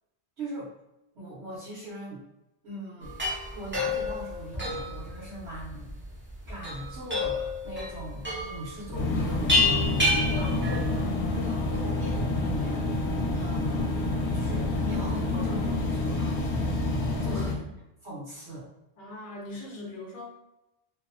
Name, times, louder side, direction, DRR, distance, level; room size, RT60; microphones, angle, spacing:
voice 1, 0.4-0.7 1.1-2.2 2.6-3.1 3.5-6.0 6.5-9.8 10.3-10.8 11.3-13.9 14.3-16.5 17.2-17.6 18.0-18.7, right 1 dB, 75° right, -9 dB, 1.1 m, -40 dB
sound 1, 3.0-11.1, left 2 dB, 15° right, 0.4 m, -29 dB
sound 2, 8.9-17.5, left 2 dB, 80° left, 0.9 m, -28 dB
voice 2, 10.3-10.8 11.2-11.5 16.9-17.6 19.0-20.4, left 1 dB, 55° left, -2 dB, 0.8 m, -41 dB
2.7 x 2.0 x 2.5 m, 0.90 s
omnidirectional pair, 1.1 m